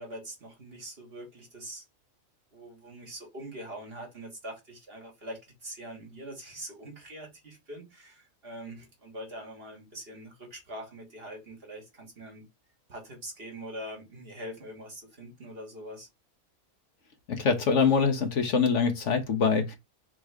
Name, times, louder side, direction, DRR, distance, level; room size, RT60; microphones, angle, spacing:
voice 1, 0.0-1.8 2.5-12.4 12.9-16.1, right 1 dB, 45° right, 1.6 m, -43 dB
voice 2, 17.3-19.8, left 5 dB, 60° left, 1.1 m, -24 dB
3.6 x 3.1 x 4.7 m
omnidirectional pair, 1.5 m